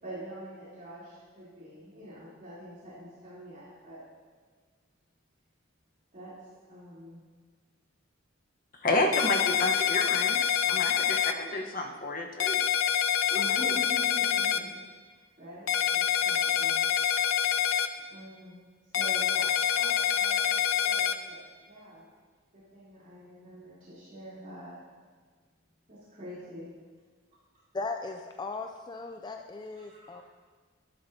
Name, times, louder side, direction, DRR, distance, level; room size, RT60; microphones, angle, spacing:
voice 1, 0.0-4.1 6.1-6.3 6.7-7.2 13.3-14.7 15.4-16.9 18.1-18.6 18.8-19.5 19.7-21.4 21.6-22.0 22.5-24.8 25.9-26.7 29.0-29.1 29.9-30.2, equal, 45° right, -11 dB, 3.4 m, -45 dB
voice 2, 8.8-12.6 13.3-13.7, left 2 dB, 45° left, 2 dB, 1.1 m, -30 dB
sound 1, 9.1-11.3 12.4-14.6 15.7-17.9 18.9-21.1, left 9 dB, 75° left, 0.5 m, -26 dB
voice 3, 27.7-30.2, left 3 dB, 20° left, 5 dB, 0.3 m, -37 dB
12.5 x 11.0 x 2.8 m, 1.5 s
head